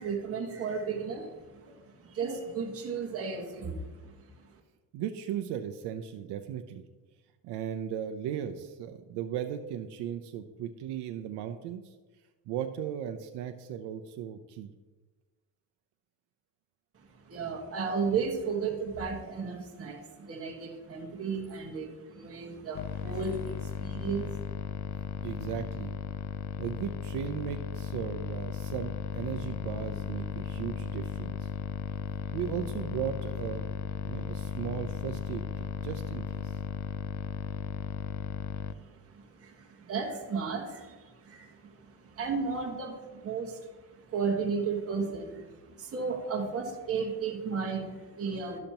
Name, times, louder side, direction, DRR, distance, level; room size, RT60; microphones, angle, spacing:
voice 1, 0.0-4.5 16.9-24.4 38.7-48.6, right 5 dB, 35° right, 0 dB, 1.5 m, -34 dB
voice 2, 4.9-6.8 7.4-11.9 12.5-14.7 25.2-25.9 26.6-31.5 32.3-36.6, right 9 dB, 75° right, 7 dB, 0.7 m, -37 dB
sound 1, 22.7-38.7, left 8 dB, 45° left, 0.5 m, -36 dB
12.0 x 6.6 x 2.9 m, 1.2 s
cardioid pair, 100°, 41 cm